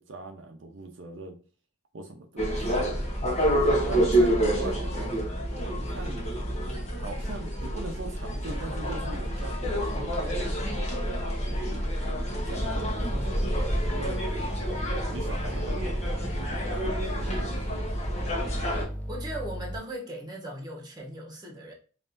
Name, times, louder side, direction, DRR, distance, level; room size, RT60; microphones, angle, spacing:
voice 1, 0.0-1.4 1.9-3.1 3.9-5.2 5.7-6.3 7.0-10.5 12.3-14.3 15.1-15.9 17.0-18.0, right 2 dB, 70° right, 3 dB, 0.6 m, -41 dB
sound 1, 2.4-18.8, equal, 35° left, 1.0 m, -28 dB
sound 2, 12.5-19.8, equal, 5° left, 0.5 m, -36 dB
voice 2, 19.1-21.7, right 1 dB, 20° right, -1 dB, 1.2 m, -38 dB
5.4 x 2.7 x 2.6 m, 0.38 s
head